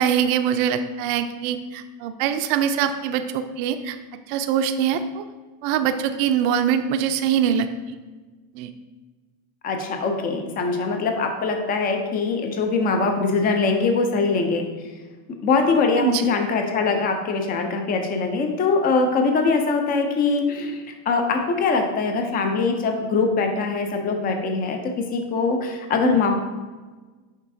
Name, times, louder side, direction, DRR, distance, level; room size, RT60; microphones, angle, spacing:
voice 1, 0.0-4.0 4.3-5.2 5.6-8.0 8.5-8.7 16.0-16.2, right 8 dB, 70° right, 9 dB, 0.6 m, -23 dB
voice 2, 9.6-14.7 15.4-26.3, left 4 dB, 20° left, 4 dB, 0.4 m, -22 dB
7.3 x 5.4 x 2.6 m, 1.3 s
cardioid pair, 160°, 46 cm